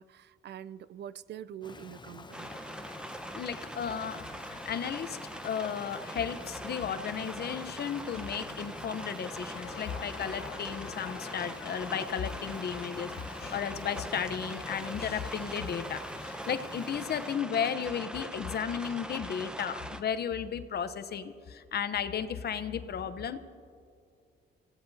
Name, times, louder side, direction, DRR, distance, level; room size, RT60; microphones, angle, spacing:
voice 1, 0.0-2.5, right 10 dB, 60° right, 0.5 m, -44 dB
Rain, 1.6-17.5, left 4 dB, 25° left, 0.7 m, -49 dB
sound 1, 2.3-20.0, right 1 dB, 5° right, 0.9 m, -42 dB
voice 2, 3.3-5.2 5.4-23.4, left 7 dB, 55° left, 0.9 m, -34 dB
sound 2, 9.5-14.7, left 9 dB, 85° left, 0.8 m, -49 dB
29.5 x 16.5 x 2.8 m
cardioid pair, 90°, 20 cm